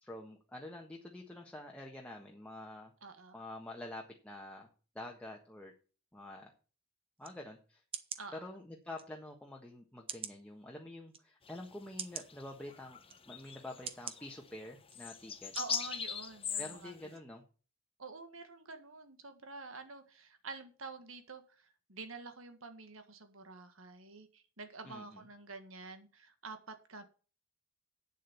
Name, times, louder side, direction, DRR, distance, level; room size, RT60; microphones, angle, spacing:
voice 1, 0.0-2.9 3.3-4.7 4.9-5.7 6.1-6.5 7.2-7.8 8.3-13.0 13.3-15.5 16.6-17.4 24.8-25.3, left 1 dB, 5° left, 0 dB, 1.4 m, -47 dB
voice 2, 3.0-3.4 8.2-8.5 15.6-16.9 18.0-27.0, right 3 dB, 70° right, 8 dB, 1.8 m, -48 dB
sound 1, 7.2-7.4 7.9-8.2 9.0-9.1 10.1-10.4 11.1-11.2 12.0-12.3 13.1-13.2 13.9-14.2 14.9-15.0 15.6-15.8 16.2-16.3, right 7 dB, 25° right, 0.9 m, -42 dB
sound 2, 11.5-11.6 12.3-12.4 12.7-17.0, left 7 dB, 25° left, 1.0 m, -40 dB
9.0 x 7.6 x 6.8 m, 0.37 s
head